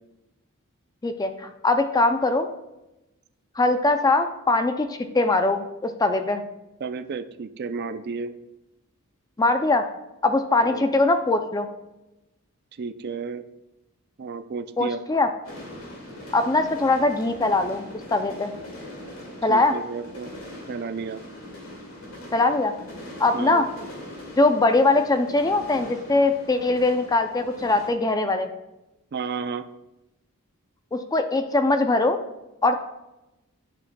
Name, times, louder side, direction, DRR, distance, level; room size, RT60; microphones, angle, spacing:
voice 1, 1.0-2.5 3.6-6.4 9.4-9.9 10.2-11.7 14.8-15.3 16.3-17.9 18.1-18.5 19.4-19.8 22.3-22.7 23.2-23.7 24.4-28.5 30.9-32.2 32.6-33.0, left 2 dB, 15° left, 7 dB, 0.4 m, -21 dB
voice 2, 6.8-8.3 10.6-10.9 12.8-13.4 14.2-15.0 19.5-20.3 20.7-21.2 23.3-23.6 29.1-29.6, right 5 dB, 50° right, 10 dB, 0.4 m, -32 dB
sound 1, 15.4-27.9, left 1 dB, 70° left, 2.0 m, -41 dB
10.0 x 7.3 x 2.2 m, 0.96 s
head